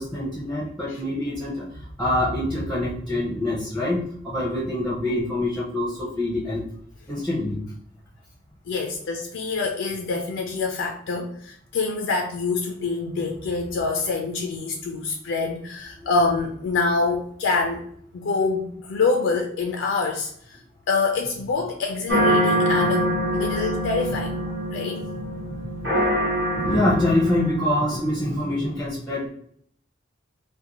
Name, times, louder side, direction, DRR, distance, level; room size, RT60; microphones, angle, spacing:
voice 1, 0.0-6.7 7.1-7.6 22.8-22.9 25.0-29.3, left 1 dB, ahead, -7 dB, 0.6 m, -26 dB
voice 2, 8.7-17.8 18.1-20.6 20.9-24.4 24.7-25.0, left 4 dB, 70° left, 2 dB, 0.4 m, -26 dB
sound 1, 22.1-28.2, equal, 65° right, 1.0 m, -25 dB
2.5 x 2.1 x 2.9 m, 0.63 s
head